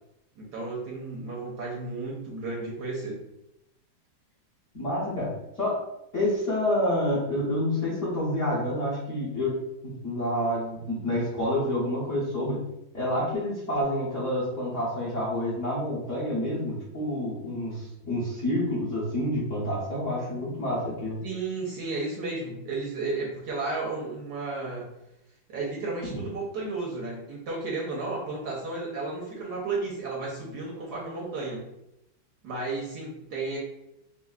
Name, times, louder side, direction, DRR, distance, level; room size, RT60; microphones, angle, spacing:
voice 1, 0.4-3.2 21.2-24.9 25.5-31.7 32.4-33.6, right 3 dB, 65° right, -4 dB, 1.2 m, -33 dB
voice 2, 4.7-5.8 6.1-9.5 9.8-12.6 12.9-21.2 26.0-26.2, left 1 dB, 50° left, -8 dB, 1.0 m, -28 dB
5.3 x 2.1 x 2.4 m, 0.86 s
omnidirectional pair, 2.2 m